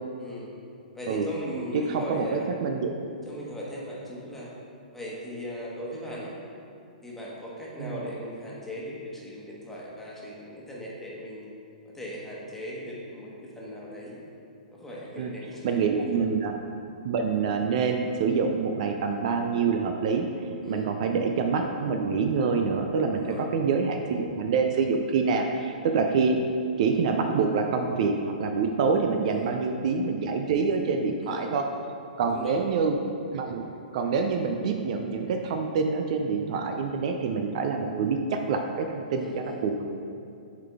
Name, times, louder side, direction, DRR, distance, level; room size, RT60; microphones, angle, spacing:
voice 1, 0.2-0.5 0.9-2.5 3.2-4.5 4.9-6.4 7.0-11.5 11.8-14.1 14.7-16.0 20.6-20.9 23.1-23.5 29.2-29.5 31.2-31.5 32.3-32.5 39.1-39.6, equal, 5° left, -6 dB, 1.2 m, -38 dB
voice 2, 1.9-2.9 7.8-8.0 15.2-15.3 15.6-16.6 17.0-26.4 26.8-31.6 32.2-33.0 33.3-33.7 33.9-39.8, right 5 dB, 50° right, 4 dB, 0.4 m, -26 dB
7.2 x 3.9 x 3.5 m, 2.6 s
hypercardioid pair, 130°, 5 cm